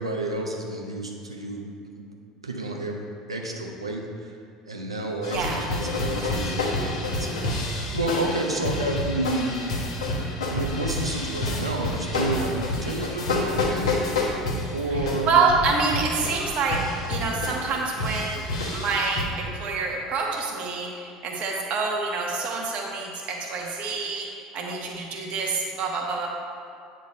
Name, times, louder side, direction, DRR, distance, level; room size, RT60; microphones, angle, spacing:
voice 1, 0.0-1.6 1.9-2.1 2.4-3.0 3.3-4.3 4.7-7.5 7.9-9.7 10.5-14.1 14.7-15.3, right 2 dB, 90° right, 1 dB, 0.8 m, -30 dB
sound 1, 5.2-19.3, left 2 dB, 75° left, 1.2 m, -29 dB
voice 2, 5.3-5.6 7.2-7.3 14.9-16.8 17.1-18.4 18.7-26.3, right 4 dB, 50° right, -1 dB, 1.3 m, -27 dB
9.4 x 3.9 x 5.3 m, 2.3 s
figure-of-eight pair, 65°, 3 cm